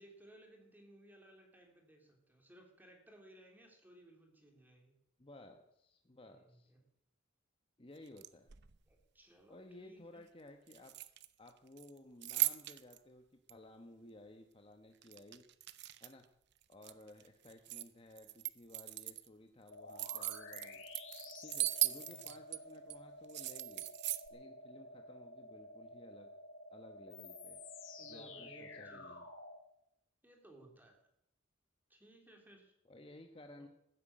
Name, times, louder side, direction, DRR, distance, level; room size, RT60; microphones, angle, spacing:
voice 1, 0.0-4.9 6.2-6.8 8.9-10.3 22.1-22.3 28.0-29.2 30.2-31.0 31.9-32.7 33.3-33.7, right 1 dB, 10° right, 2 dB, 3.2 m, -60 dB
voice 2, 5.2-6.7 7.8-8.5 9.5-11.0 11.4-15.4 16.0-16.3 16.7-20.8 21.4-23.9 24.3-26.3 26.7-27.6 28.0-29.2 32.9-33.7, left 1 dB, 25° left, 5 dB, 1.1 m, -56 dB
sound 1, 8.1-8.8 10.7-11.5 11.8-13.0 13.5-13.6 15.0-16.2 16.6-17.9 18.2-19.3 19.7-22.6 22.9-23.0 23.3-24.3, right 15 dB, 60° right, 0.8 m, -38 dB
sound 2, 19.7-29.6, left 2 dB, 70° left, 2.7 m, -51 dB
15.0 x 9.6 x 8.7 m, 0.78 s
head